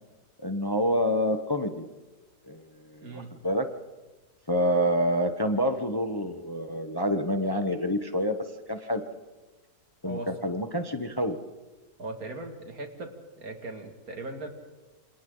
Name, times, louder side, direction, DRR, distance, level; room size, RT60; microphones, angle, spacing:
voice 1, 0.4-1.9 2.5-3.7 4.5-8.4 8.7-9.0 10.0-11.4, equal, 15° left, 7 dB, 1.0 m, -27 dB
voice 2, 12.0-13.1 13.4-14.5, right 2 dB, 65° right, 4 dB, 2.9 m, -38 dB
28.0 x 26.5 x 3.9 m, 1.2 s
omnidirectional pair, 1.7 m